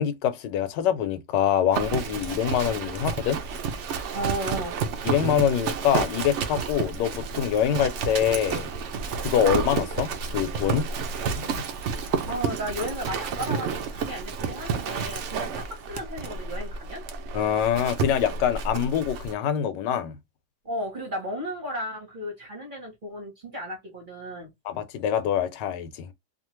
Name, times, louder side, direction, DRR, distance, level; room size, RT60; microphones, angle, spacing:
voice 1, 0.0-3.4 5.0-8.7 9.2-10.9 11.4-11.6 17.3-20.2 24.6-26.1, left 9 dB, 85° left, 1.2 m, -25 dB
Livestock farm animals working animals, 1.7-19.3, right 6 dB, 75° right, 0.6 m, -31 dB
voice 2, 4.1-4.8 12.3-17.0 20.6-24.5, equal, 35° right, 0.9 m, -34 dB
2.8 x 2.4 x 2.9 m
omnidirectional pair, 1.8 m